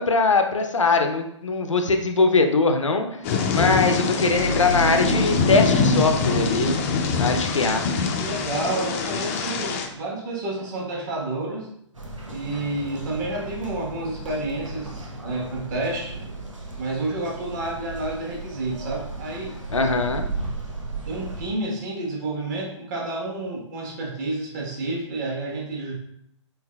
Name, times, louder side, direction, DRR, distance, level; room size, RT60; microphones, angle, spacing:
voice 1, 0.0-3.2 3.5-6.8 7.2-7.8 19.7-20.3, left 3 dB, 80° left, 5 dB, 0.6 m, -21 dB
Thunder / Rain, 3.2-9.9, left 5 dB, 30° left, 0.4 m, -24 dB
sound 1, 4.0-9.9, right 1 dB, 60° right, 0.8 m, -31 dB
voice 2, 8.2-11.7 12.3-16.3 16.8-19.6 21.1-25.9, right 2 dB, 40° right, -2 dB, 1.1 m, -30 dB
sound 2, 11.9-21.5, right 3 dB, 85° right, 0.9 m, -35 dB
4.5 x 3.2 x 2.2 m, 0.75 s
figure-of-eight pair, 120°, 16 cm